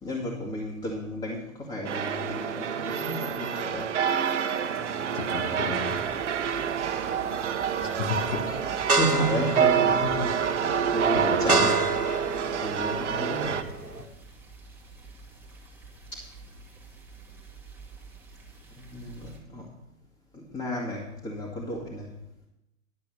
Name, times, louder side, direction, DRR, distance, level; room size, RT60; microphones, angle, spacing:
voice 1, 0.0-4.0 8.4-8.6 8.9-11.9 12.2-13.6 16.1-16.3 18.8-19.7 20.3-22.1, equal, 10° left, -3 dB, 2.1 m, -33 dB
sound 1, 1.8-13.6, right 7 dB, 55° right, 1.1 m, -27 dB
sound 2, 4.8-14.0, right 3 dB, 90° right, 1.4 m, -31 dB
voice 2, 5.1-5.9 7.8-8.5 11.1-11.7, left 5 dB, 55° left, 4 dB, 2.3 m, -33 dB
sound 3, 6.0-19.4, right 3 dB, 5° right, 2.1 m, -49 dB
11.5 x 8.1 x 6.6 m, 0.85 s
figure-of-eight pair, 115°, 43 cm